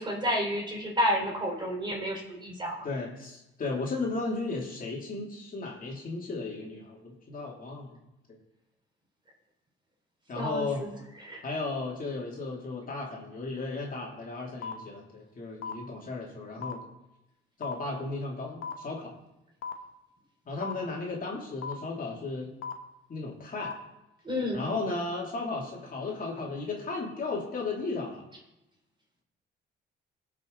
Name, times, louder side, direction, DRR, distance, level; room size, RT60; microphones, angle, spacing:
voice 1, 0.0-2.9 10.4-11.0 11.2-11.4 24.2-24.6, equal, 25° right, -1 dB, 3.7 m, -30 dB
voice 2, 2.8-7.9 10.3-10.9 11.4-16.9 17.6-19.1 20.5-22.5 23.1-23.7 24.5-28.3, left 3 dB, 45° left, -2 dB, 2.7 m, -35 dB
sound 1, 14.6-14.7 15.6-15.7 16.6-16.7 17.6-17.7 18.6-18.7 19.6-19.7 20.6-20.7 21.6-21.7 22.6-22.7 23.6-23.7, left 6 dB, 90° left, 1.1 m, -35 dB
17.5 x 6.0 x 3.9 m, 0.92 s
cardioid pair, 90°, 20 cm